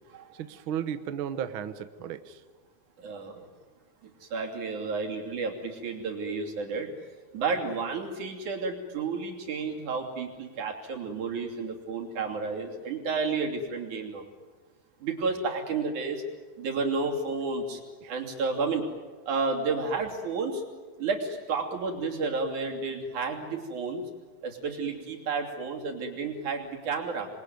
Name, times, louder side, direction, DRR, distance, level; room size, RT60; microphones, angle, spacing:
voice 1, 0.4-2.4 18.0-18.1, right 9 dB, 60° right, 10 dB, 1.5 m, -34 dB
voice 2, 3.0-3.5 4.2-6.9 7.3-14.2 15.0-16.2 16.6-17.8 18.1-18.9 19.3-20.6 21.0-24.1 24.4-27.3, right 4 dB, 85° right, 1 dB, 4.5 m, -31 dB
28.0 x 22.0 x 9.4 m, 1.4 s
omnidirectional pair, 3.4 m